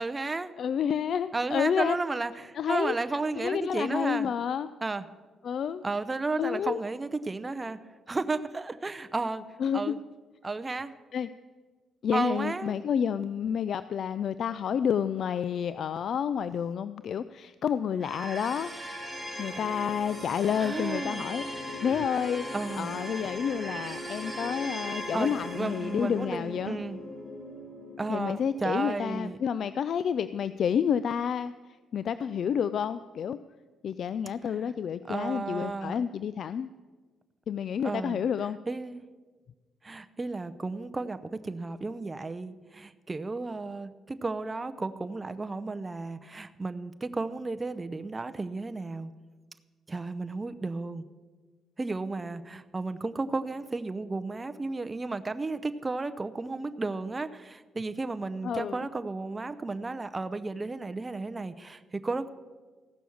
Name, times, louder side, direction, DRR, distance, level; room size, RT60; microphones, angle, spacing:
voice 1, 0.0-0.5 1.3-4.3 4.8-5.1 5.8-7.8 8.1-9.4 9.7-10.0 10.4-10.9 12.1-12.8 20.6-21.3 22.5-22.9 25.1-27.0 28.0-29.4 34.5-34.7 35.1-36.0 37.8-38.2 38.7-39.0 39.8-49.1 49.9-51.1 51.8-62.3, right 3 dB, 20° right, 10 dB, 0.6 m, -33 dB
voice 2, 0.6-2.0 2.5-2.9 3.4-4.7 5.4-5.8 6.4-6.8 9.6-10.0 11.1-11.3 12.0-18.7 19.4-21.5 21.8-22.5 22.8-26.8 28.1-31.5 31.9-33.4 33.8-36.7 37.5-38.6 58.4-58.8, left 8 dB, 60° left, 14 dB, 0.3 m, -29 dB
sound 1, 18.0-29.1, equal, 5° left, 3.7 m, -39 dB
15.0 x 6.1 x 7.1 m, 1.4 s
cardioid pair, 90°, 0 cm